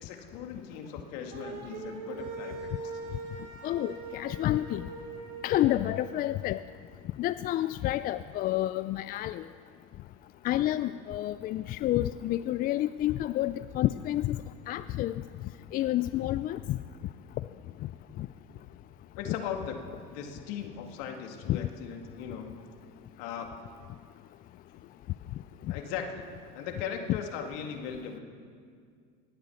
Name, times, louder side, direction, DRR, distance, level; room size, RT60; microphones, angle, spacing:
voice 1, 0.0-2.9 19.2-19.8 20.1-22.6 23.2-23.5 24.7-24.9 25.7-26.3 26.5-28.2, left 7 dB, 75° left, 4 dB, 2.1 m, -38 dB
sound 1, 1.3-6.2, right 4 dB, 65° right, 3.7 m, -41 dB
voice 2, 3.6-4.8 5.4-6.6 7.2-9.4 10.4-14.4 14.7-15.1 15.7-16.8 19.3-19.4 21.5-21.6, left 14 dB, 45° left, 13 dB, 0.4 m, -29 dB
19.5 x 9.0 x 7.1 m, 2.1 s
supercardioid pair, 95°, 21 cm